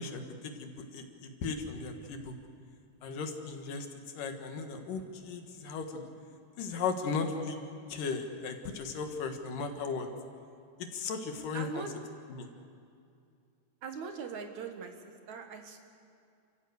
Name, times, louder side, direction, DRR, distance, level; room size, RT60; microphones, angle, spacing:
voice 1, 0.0-2.3 3.0-3.9 4.2-6.1 6.6-7.6 7.9-10.1 10.8-11.8 12.3-12.5, left 4 dB, 80° left, 5 dB, 3.2 m, -36 dB
voice 2, 11.5-11.9 13.8-15.8, right 5 dB, 65° right, 5 dB, 2.7 m, -41 dB
29.0 x 15.0 x 8.1 m, 2.4 s
omnidirectional pair, 3.8 m